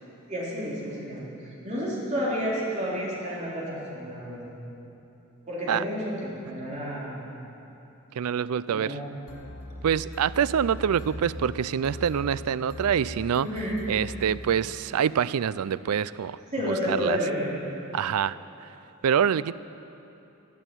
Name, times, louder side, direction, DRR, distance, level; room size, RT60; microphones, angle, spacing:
voice 1, 0.3-1.3 1.6-4.5 5.5-7.3 8.7-9.0 13.4-13.8 16.5-17.5, equal, 35° right, -6 dB, 3.8 m, -30 dB
voice 2, 8.2-9.0 9.8-13.5 13.9-16.4 16.9-17.2 17.9-18.7 19.0-19.5, right 8 dB, 85° right, 18 dB, 0.4 m, -26 dB
sound 1, 9.3-15.0, left 1 dB, 75° left, 2.6 m, -40 dB
12.5 x 12.0 x 9.0 m, 2.9 s
head